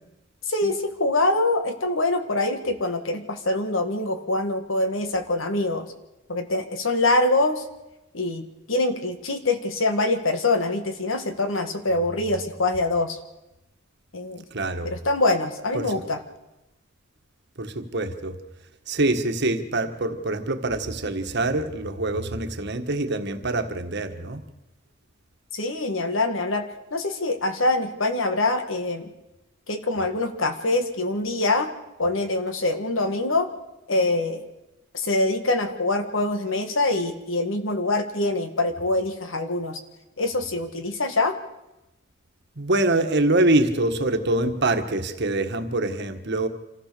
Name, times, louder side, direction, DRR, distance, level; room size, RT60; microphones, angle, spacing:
voice 1, 0.5-5.9 6.3-7.6 8.1-13.2 14.1-14.4 14.8-16.2 25.5-29.1 29.7-31.7 32.0-33.5 33.9-34.4 34.9-39.8 40.2-41.3, left 2 dB, 70° left, 7 dB, 1.8 m, -24 dB
voice 2, 14.5-14.9 15.7-15.9 17.6-18.4 18.9-24.4 42.6-46.5, right 2 dB, 55° right, 7 dB, 1.5 m, -25 dB
26.0 x 15.0 x 6.8 m, 0.97 s
head